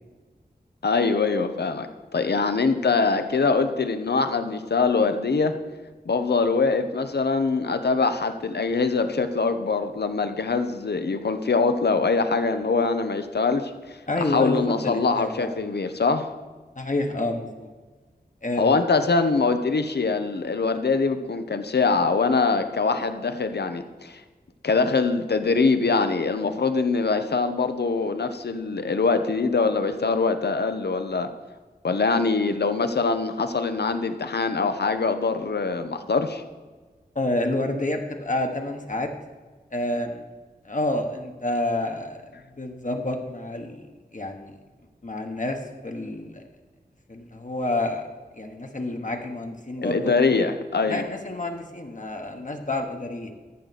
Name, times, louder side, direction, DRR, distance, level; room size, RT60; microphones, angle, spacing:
voice 1, 0.8-5.5 6.1-14.0 14.3-16.3 18.6-24.2 24.6-31.3 31.8-36.4 49.8-51.0, left 4 dB, 80° left, 9 dB, 0.8 m, -23 dB
voice 2, 14.1-15.5 16.7-17.7 18.4-18.8 37.1-39.1 39.7-40.2 40.6-43.9 44.1-44.5 45.0-46.4 47.1-48.1 48.3-50.1 50.9-53.4, left 2 dB, 50° left, 4 dB, 1.2 m, -29 dB
14.0 x 6.4 x 4.2 m, 1.3 s
wide cardioid pair, 50°, 17 cm